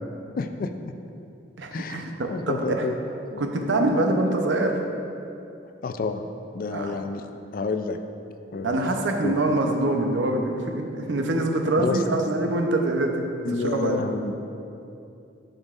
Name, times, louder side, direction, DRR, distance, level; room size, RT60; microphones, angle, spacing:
voice 1, 0.4-0.7 1.7-2.0 2.3-3.0 3.3-3.5 5.8-6.3 6.5-7.3 7.5-8.0 8.5-8.8 9.2-9.4 11.8-12.0 13.4-14.3, left 3 dB, 45° left, 7 dB, 0.3 m, -29 dB
voice 2, 1.6-2.9 3.4-4.8 6.7-6.9 8.6-13.2 13.6-14.0, right 2 dB, 70° right, 3 dB, 0.7 m, -24 dB
10.5 x 5.3 x 2.4 m, 2.7 s
head